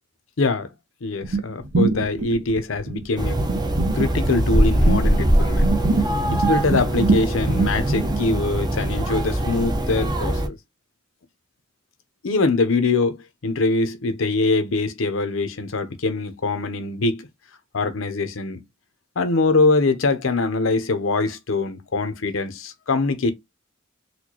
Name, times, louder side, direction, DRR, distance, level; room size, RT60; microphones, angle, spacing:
voice 1, 0.4-0.7 1.0-3.4 3.9-5.7 6.3-10.6 12.2-17.3 17.7-18.6 19.2-23.3, left 3 dB, 75° left, 0.7 m, -23 dB
sound 1, 1.2-5.3 5.6-8.4, right 3 dB, 70° right, 0.6 m, -24 dB
sound 2, 3.2-10.5, right 1 dB, 20° right, 0.5 m, -22 dB
4.2 x 2.2 x 2.9 m
head